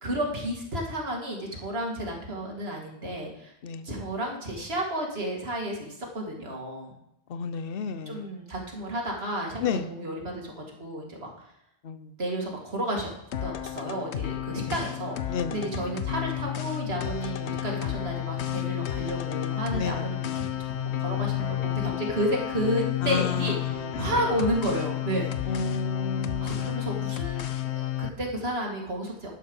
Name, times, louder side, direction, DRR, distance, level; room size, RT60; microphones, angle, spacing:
voice 1, 0.0-3.5 3.8-6.9 8.1-11.3 12.2-13.1 13.4-20.4 21.0-25.7 26.4-29.3, right 1 dB, 70° right, 0 dB, 2.5 m, -32 dB
voice 2, 7.3-8.3 9.6-9.9 11.8-12.1 15.3-15.6 19.7-20.1 23.0-23.4 24.0-24.1 25.5-26.8, left 5 dB, 60° left, 12 dB, 0.9 m, -31 dB
sound 1, 13.3-28.1, left 12 dB, 90° left, 1.0 m, -31 dB
11.5 x 8.0 x 5.4 m, 0.80 s
omnidirectional pair, 1.1 m